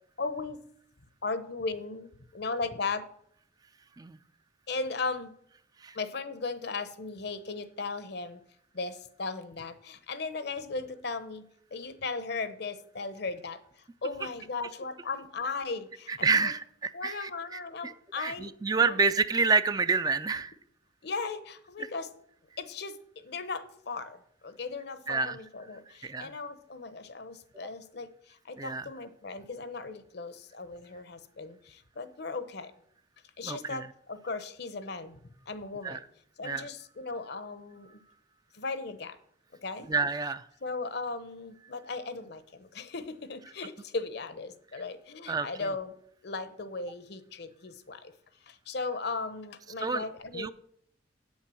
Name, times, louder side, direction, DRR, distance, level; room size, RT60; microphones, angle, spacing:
voice 1, 0.2-0.6 1.2-3.1 4.7-5.3 5.9-8.4 8.7-16.5 16.9-18.5 18.9-19.0 21.0-22.1 22.6-32.7 33.4-36.0 36.4-38.0 38.5-39.2 39.6-39.9 40.6-46.0 46.2-48.1 48.5-50.5, left 4 dB, 60° left, 12 dB, 0.9 m, -37 dB
voice 2, 16.1-17.3 17.8-20.5 25.1-25.4 26.0-26.3 28.6-28.9 33.4-33.9 35.8-36.0 36.4-36.7 39.9-40.4 45.3-45.7 49.8-50.0 50.3-50.5, right 4 dB, 20° right, 13 dB, 0.4 m, -28 dB
8.4 x 7.3 x 7.6 m, 0.69 s
head